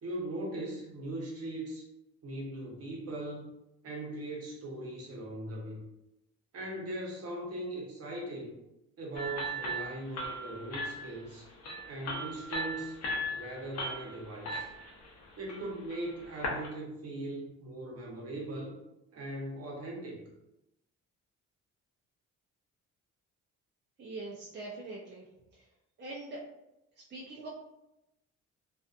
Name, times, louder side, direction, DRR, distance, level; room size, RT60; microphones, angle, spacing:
voice 1, 0.0-1.8 2.2-3.5 3.8-5.8 6.5-8.5 9.0-11.4 11.9-13.0 13.3-14.7 15.4-18.8 19.1-20.2, right 1 dB, 55° right, -2 dB, 0.9 m, -39 dB
sound 1, 9.1-16.7, equal, 55° left, 0.8 m, -38 dB
voice 2, 24.0-25.2 26.0-26.4 27.1-27.5, right 2 dB, 35° right, -3 dB, 0.5 m, -42 dB
2.5 x 2.5 x 2.4 m, 0.89 s
cardioid pair, 90°, 30 cm